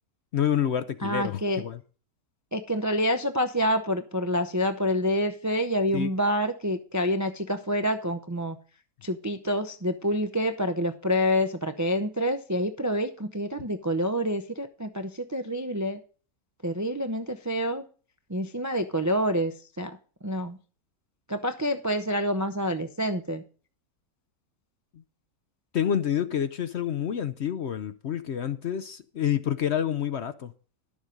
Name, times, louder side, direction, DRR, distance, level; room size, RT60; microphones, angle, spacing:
voice 1, 0.3-1.8 5.9-6.1 25.7-30.5, left 9 dB, 60° left, 0.8 m, -28 dB
voice 2, 1.0-1.6 2.5-8.6 9.0-16.0 16.6-17.8 18.3-19.9 20.2-20.6 21.3-23.4, equal, 25° right, 0.4 m, -27 dB
11.5 x 7.2 x 5.2 m
omnidirectional pair, 1.6 m